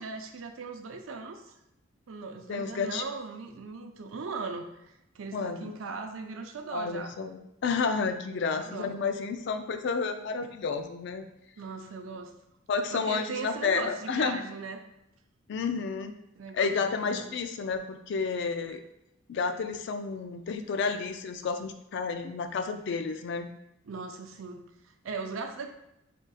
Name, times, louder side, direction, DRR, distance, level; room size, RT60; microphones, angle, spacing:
voice 1, 0.0-1.4 2.1-7.1 8.6-9.0 11.6-12.3 12.9-14.8 16.4-17.3 23.8-25.7, right 4 dB, 85° right, 5 dB, 0.5 m, -39 dB
voice 2, 2.5-3.0 5.3-5.8 6.7-11.2 12.7-14.4 15.5-16.1 16.5-18.8 19.3-23.5, left 5 dB, 60° left, 8 dB, 0.3 m, -31 dB
3.7 x 2.4 x 3.9 m, 0.83 s
head